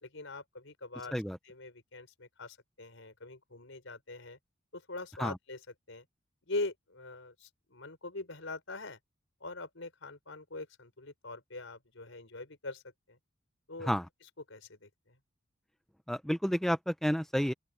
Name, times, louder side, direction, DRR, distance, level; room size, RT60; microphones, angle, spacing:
voice 1, 0.0-1.1 1.4-4.4 4.7-5.6 5.9-6.0 6.5-9.0 9.4-12.8 13.1-13.2 13.7-13.9 14.5-15.1, left 2 dB, 75° left, 4.8 m, -42 dB
voice 2, 16.1-17.5, equal, ahead, 0.6 m, -30 dB
open air
head